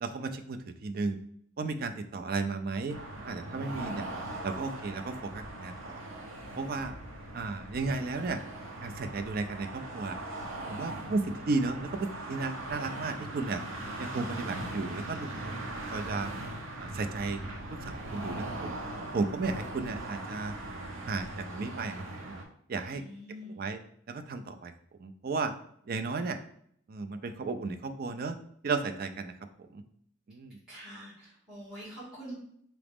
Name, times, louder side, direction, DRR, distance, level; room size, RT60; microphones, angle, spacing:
voice 1, 0.0-1.2 1.6-3.0 3.2-4.1 4.4-6.0 6.6-7.0 7.3-8.4 8.8-10.2 10.7-13.6 14.0-15.5 15.9-16.3 16.8-17.4 17.8-18.7 19.1-20.6 21.1-21.9 22.2-22.3 22.7-23.0 23.5-23.8 24.1-24.7 25.0-25.5 25.9-26.4 26.9-28.4 28.6-29.3 29.6-29.8 30.3-30.6, right 3 dB, 45° right, 8 dB, 0.4 m, -34 dB
sound 1, 2.9-22.4, right 1 dB, 75° right, 0.8 m, -40 dB
voice 2, 22.9-23.6 30.7-32.3, equal, 5° right, -11 dB, 1.9 m, -45 dB
4.8 x 3.0 x 3.5 m, 0.67 s
head